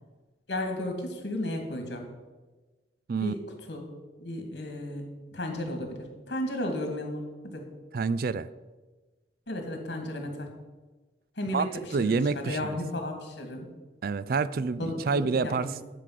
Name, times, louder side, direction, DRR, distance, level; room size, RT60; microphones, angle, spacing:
voice 1, 0.5-2.1 3.2-3.4 3.7-3.9 4.2-7.7 9.5-10.5 11.4-13.7 14.8-15.7, left 1 dB, 70° left, 4 dB, 2.2 m, -34 dB
voice 2, 7.9-8.5 11.5-12.8 14.0-15.8, right 4 dB, 55° right, 17 dB, 0.4 m, -28 dB
11.0 x 5.0 x 7.6 m, 1.2 s
head